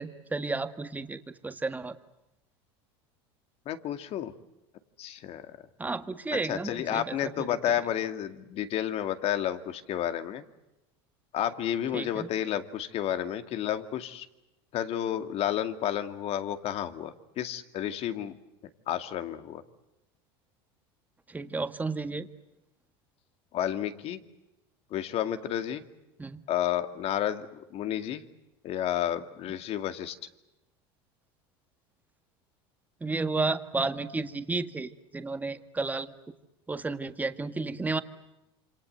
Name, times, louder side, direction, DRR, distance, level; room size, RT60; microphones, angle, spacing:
voice 1, 0.0-2.0 5.8-7.6 11.9-12.3 21.3-22.3 26.2-26.4 33.0-36.1 36.7-38.0, right 3 dB, 10° right, 9 dB, 1.8 m, -32 dB
voice 2, 3.7-4.3 5.0-5.5 6.4-10.4 11.3-14.3 14.7-18.4 18.9-19.6 23.5-24.2 24.9-25.8 26.5-28.2 28.6-30.2, left 11 dB, 50° left, 9 dB, 2.2 m, -31 dB
28.0 x 25.5 x 8.0 m, 0.94 s
supercardioid pair, 105°, 13 cm